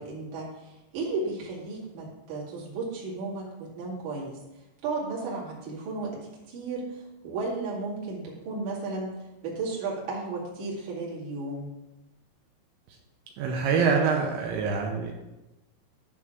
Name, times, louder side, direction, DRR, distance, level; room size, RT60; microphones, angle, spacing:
voice 1, 0.0-4.4 4.8-9.1 9.4-11.7, right 3 dB, 50° right, -6 dB, 3.2 m, -34 dB
voice 2, 13.4-15.1, right 5 dB, 85° right, 0 dB, 3.1 m, -25 dB
11.0 x 3.7 x 5.9 m, 1.0 s
omnidirectional pair, 5.2 m